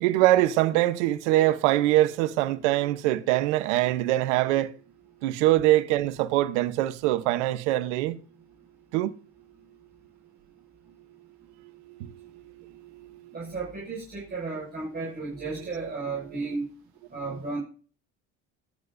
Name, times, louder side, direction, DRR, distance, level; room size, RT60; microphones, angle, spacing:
voice 1, 0.0-4.7 5.2-8.1 8.9-9.1 15.7-15.8, right 15 dB, 85° right, 1.0 m, -23 dB
voice 2, 13.3-16.6 17.1-17.6, right 3 dB, 30° right, 6.3 m, -33 dB
24.0 x 9.8 x 2.6 m
supercardioid pair, 80°, 34 cm